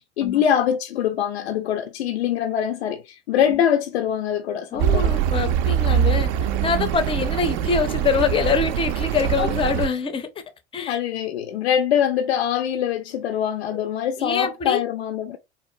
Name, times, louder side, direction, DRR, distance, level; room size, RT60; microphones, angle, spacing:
voice 1, 0.0-5.1 9.4-9.5 10.8-15.4, left 9 dB, 70° left, 0.5 m, -23 dB
voice 2, 4.7-6.3 6.6-10.3 10.7-11.0 13.7-13.8 14.2-14.8, left 5 dB, 15° left, 0.5 m, -24 dB
Accelerating revving vroom, 4.8-9.9, right 9 dB, 45° right, 0.4 m, -23 dB
3.9 x 2.4 x 2.7 m
figure-of-eight pair, 80°, 34 cm